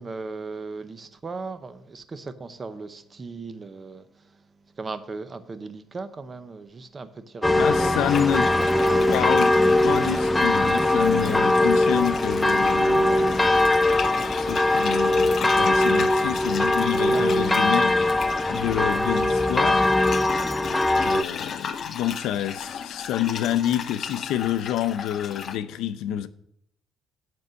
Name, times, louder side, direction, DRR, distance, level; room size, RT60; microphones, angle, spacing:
voice 1, 0.0-4.4 4.8-8.0 11.2-11.3 14.2-14.4 17.1-17.3 18.5-18.6, right 3 dB, 25° right, 0.7 m, -37 dB
sound 1, 7.4-21.2, left 1 dB, 10° left, 0.4 m, -21 dB
voice 2, 7.5-8.5 9.1-9.5 9.8-13.4 14.2-17.9 18.5-19.9 21.0-26.3, left 11 dB, 85° left, 0.6 m, -28 dB
sound 2, 8.1-25.6, left 7 dB, 45° left, 0.7 m, -35 dB
7.9 x 5.4 x 7.5 m
cardioid pair, 120°, 0 cm